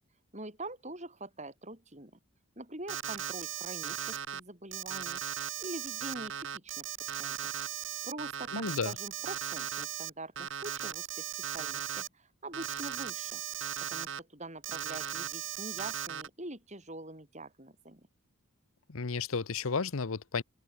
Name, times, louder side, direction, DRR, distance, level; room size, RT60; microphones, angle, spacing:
voice 1, 0.3-2.1 2.6-5.2 5.6-6.9 7.2-7.4 8.0-11.3 11.5-13.4 13.9-18.1, right 2 dB, 30° right, 6.6 m, -44 dB
Alarm, 2.9-4.4 4.7-10.1 10.4-12.1 12.5-14.2 14.6-16.3, right 9 dB, 60° right, 2.0 m, -37 dB
voice 2, 8.5-8.9 18.9-20.4, left 4 dB, 70° left, 0.8 m, -32 dB
open air
head